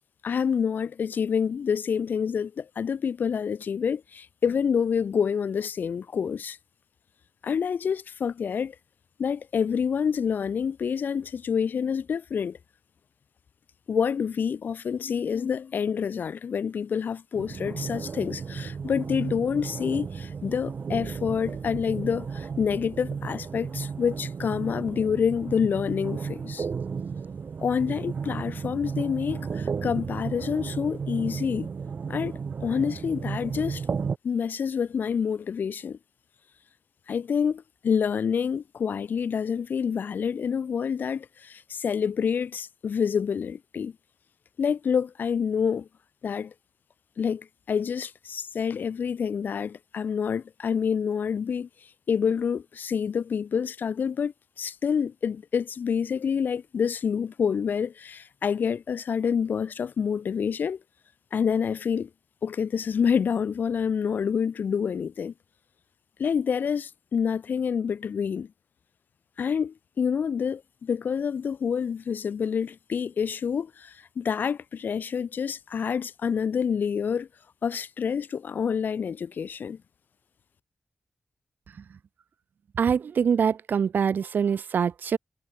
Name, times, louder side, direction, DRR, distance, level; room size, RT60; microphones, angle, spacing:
voice 1, 0.2-6.6 7.4-8.7 9.2-12.6 13.9-26.7 27.6-31.7 32.1-33.8 34.2-36.0 37.1-43.9 44.6-45.9 46.2-46.5 47.2-51.7 52.1-60.8 61.3-62.1 62.4-65.3 66.2-68.5 69.4-77.3 77.6-79.8, left 7 dB, 75° left, 1.0 m, -27 dB
sound 1, 17.4-34.2, right 5 dB, 65° right, 0.9 m, -34 dB
voice 2, 82.8-85.2, right 7 dB, 80° right, 1.6 m, -24 dB
cardioid pair, 65°, 3 cm